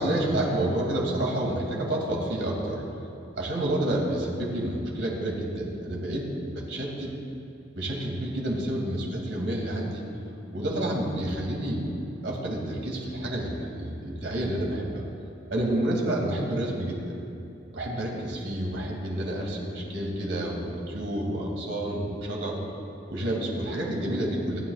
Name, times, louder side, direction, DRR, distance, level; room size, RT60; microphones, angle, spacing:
voice 1, 0.0-2.8 3.4-7.1 7.8-10.0 10.5-11.9 12.2-15.0 15.5-17.2 17.7-22.6 23.1-24.6, right 1 dB, 80° right, -2 dB, 2.7 m, -29 dB
27.0 x 9.8 x 2.5 m, 2.9 s
head